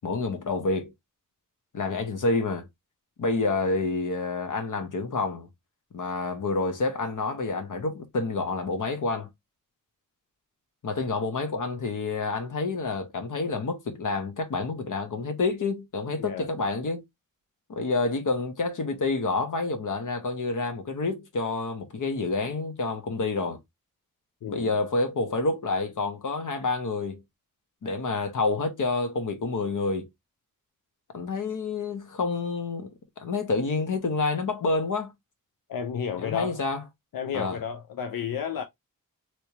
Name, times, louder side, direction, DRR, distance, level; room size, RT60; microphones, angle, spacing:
voice 1, 0.0-0.9 1.7-2.7 3.2-5.5 5.9-9.3 10.8-17.0 17.7-23.6 24.5-27.2 27.8-30.1 31.1-32.9 33.2-35.1 36.2-36.8 37.3-37.6, left 3 dB, 65° left, 0.9 m, -28 dB
voice 2, 16.2-16.5 24.4-24.7 35.7-36.6 37.1-38.6, left 7 dB, 90° left, 0.6 m, -32 dB
3.2 x 3.0 x 2.8 m
wide cardioid pair, 110°, 33 cm